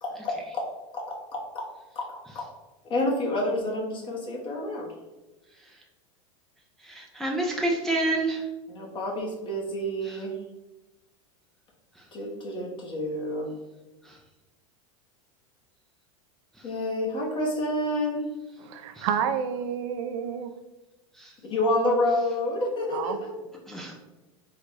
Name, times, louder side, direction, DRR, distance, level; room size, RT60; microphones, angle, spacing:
voice 1, 0.0-2.5 2.8-4.9 8.7-10.4 12.1-13.5 16.6-18.3 21.5-23.3, left 1 dB, 30° left, -2 dB, 1.2 m, -29 dB
voice 2, 6.8-8.4 19.0-19.1 21.2-21.3 23.7-23.9, right 2 dB, ahead, -2 dB, 0.5 m, -28 dB
voice 3, 18.7-20.5 22.9-23.2, right 7 dB, 70° right, 9 dB, 0.5 m, -29 dB
3.9 x 2.4 x 4.6 m, 1.1 s
supercardioid pair, 125°, 17 cm